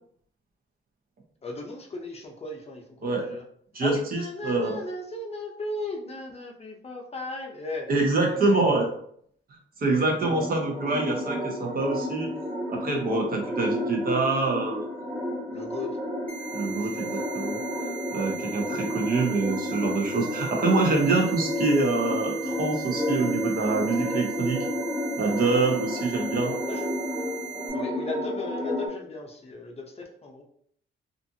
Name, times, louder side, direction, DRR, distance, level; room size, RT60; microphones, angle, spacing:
voice 1, 1.4-3.4 3.8-7.9 8.3-8.9 15.5-16.0 16.7-17.1 26.7-26.9 27.7-30.4, left 2 dB, 30° left, 1 dB, 0.6 m, -36 dB
voice 2, 3.7-4.8 7.9-8.9 9.8-12.3 12.7-14.8 16.5-17.6 18.1-24.6 25.2-26.5, right 3 dB, 50° right, 1 dB, 0.8 m, -25 dB
sound 1, 10.2-28.9, left 1 dB, 30° right, 1.2 m, -31 dB
sound 2, 16.3-27.7, right 9 dB, 5° left, 1.2 m, -39 dB
2.5 x 2.4 x 2.7 m, 0.64 s
cardioid pair, 90°, 20 cm